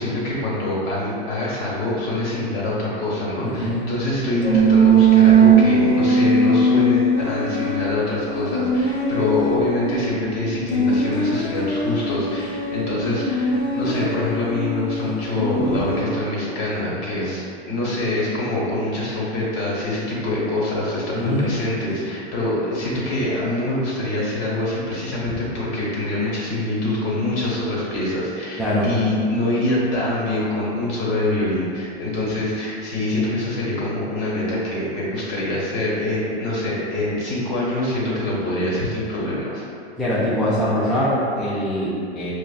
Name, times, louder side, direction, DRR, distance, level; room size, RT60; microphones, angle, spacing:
voice 1, 0.0-39.6, left 1 dB, 45° left, -5 dB, 1.4 m, -25 dB
voice 2, 3.4-3.9 21.1-21.5 28.6-28.9 40.0-42.3, equal, ahead, -11 dB, 0.4 m, -22 dB
sound 1, 4.4-10.1 10.7-16.0, right 3 dB, 75° left, 0.7 m, -19 dB
5.3 x 2.5 x 2.3 m, 2.5 s
hypercardioid pair, 110°, 33 cm